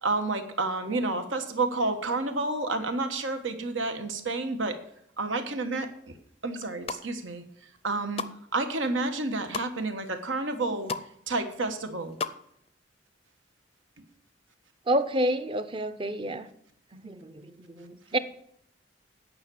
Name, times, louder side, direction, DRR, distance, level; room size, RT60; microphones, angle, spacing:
voice 1, 0.0-4.8 5.2-6.1 6.4-7.4 7.8-8.2 8.5-10.9 11.3-12.2 14.0-14.1, right 3 dB, 80° right, 7 dB, 1.4 m, -30 dB
sound 1, 6.6-7.0 7.6-8.4 8.8-9.7 10.2-10.3 10.5-11.1 11.4-12.4 12.7-12.8, left 4 dB, 30° left, 0.5 m, -35 dB
voice 2, 14.9-16.5 16.9-18.2, right 1 dB, 25° right, 10 dB, 0.6 m, -29 dB
9.7 x 5.9 x 8.6 m, 0.70 s
head